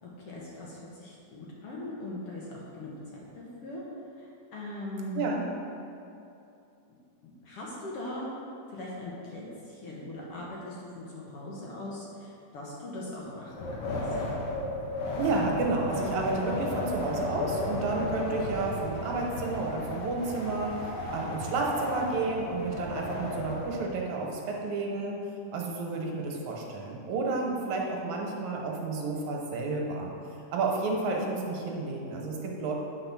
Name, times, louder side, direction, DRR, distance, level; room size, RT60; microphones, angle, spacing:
voice 1, 0.0-3.8 4.2-5.4 7.2-8.3 8.7-14.0, left 1 dB, 60° left, -5 dB, 1.8 m, -40 dB
Wind, 13.5-23.9, left 1 dB, 80° left, 0.9 m, -34 dB
voice 2, 15.2-25.2 25.5-30.1 30.5-32.7, right 3 dB, 80° right, 0 dB, 2.3 m, -31 dB
8.8 x 4.4 x 5.9 m, 2.7 s
omnidirectional pair, 3.4 m